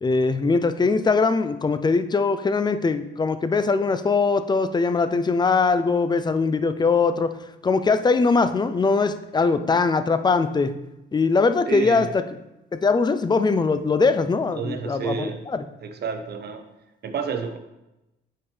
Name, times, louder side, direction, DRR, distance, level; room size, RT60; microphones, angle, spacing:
voice 1, 0.0-7.3 7.6-10.7 11.1-12.2 12.7-15.6, left 4 dB, 20° left, 11 dB, 0.5 m, -21 dB
voice 2, 11.7-12.1 14.5-15.4 15.8-16.7 17.0-17.6, right 6 dB, 55° right, 6 dB, 0.9 m, -29 dB
8.8 x 4.4 x 3.3 m, 0.94 s
cardioid pair, 90°, 20 cm